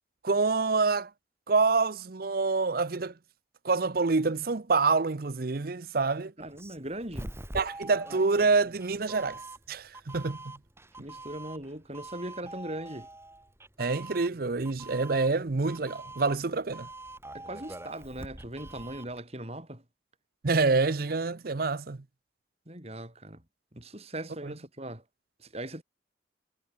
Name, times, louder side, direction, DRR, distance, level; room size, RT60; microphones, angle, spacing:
voice 1, 0.2-1.1 1.5-3.1 3.6-6.3 7.5-9.4 9.7-10.4 13.8-16.9 20.4-22.0 24.4-24.5, right 4 dB, 55° right, 0.7 m, -27 dB
Doorbell, 6.4-19.2, right 2 dB, 15° right, 2.9 m, -45 dB
voice 2, 6.4-7.3 11.0-13.1 17.3-19.8 22.7-23.4 23.7-25.0 25.4-25.8, right 1 dB, 35° right, 6.6 m, -39 dB
head